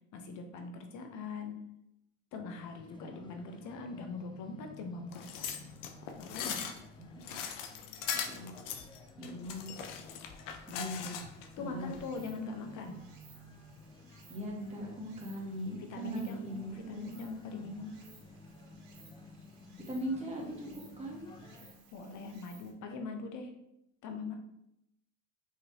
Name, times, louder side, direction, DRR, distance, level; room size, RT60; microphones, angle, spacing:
voice 1, 0.1-1.6 2.3-5.5 6.2-6.7 11.6-13.0 15.8-16.4 16.7-18.0 21.9-23.5 24.0-24.4, left 4 dB, 50° left, 4 dB, 1.0 m, -42 dB
sound 1, 2.5-21.7, left 2 dB, 10° left, 0.6 m, -55 dB
voice 2, 3.0-3.4 7.0-7.4 8.1-8.5 9.2-9.7 10.7-11.2 11.6-12.0 14.3-17.0 19.9-21.2, equal, 15° right, -2 dB, 1.5 m, -40 dB
sound 2, 5.1-11.5 11.9-12.0, left 8 dB, 75° left, 0.7 m, -40 dB
Stream, 11.2-22.7, right 5 dB, 60° right, 1.2 m, -61 dB
4.9 x 3.1 x 2.9 m, 0.81 s
hypercardioid pair, 90°, 38 cm